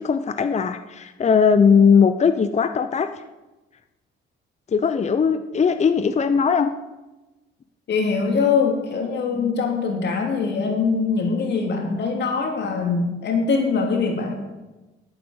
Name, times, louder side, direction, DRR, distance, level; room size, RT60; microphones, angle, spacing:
voice 1, 0.0-3.1 4.7-6.7, left 6 dB, 35° left, 9 dB, 0.7 m, -19 dB
voice 2, 7.9-14.3, left 5 dB, 60° left, 2 dB, 3.0 m, -22 dB
9.7 x 9.1 x 8.0 m, 1.1 s
cardioid pair, 90°, 20 cm